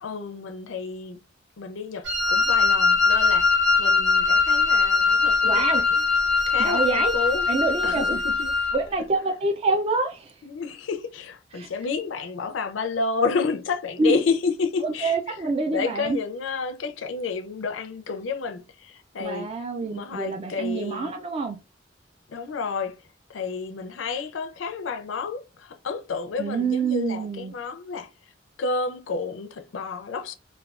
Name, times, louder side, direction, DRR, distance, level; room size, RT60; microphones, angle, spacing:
voice 1, 0.0-1.2 1.6-6.0 6.5-7.4 7.8-8.6 10.4-15.4 15.7-19.5 19.8-21.2 22.3-23.0 23.3-28.1 28.6-30.3, left 4 dB, 80° left, 0.5 m, -30 dB
Wind instrument woodwind instrument, 2.0-8.8, left 4 dB, 70° right, 1.0 m, -21 dB
voice 2, 5.4-5.8 6.6-7.1 7.5-8.2 8.7-10.4 11.5-11.7 14.0-14.1 14.8-16.2 19.2-21.6 26.4-27.5, right 3 dB, 30° right, 0.3 m, -26 dB
3.5 x 2.2 x 2.3 m
head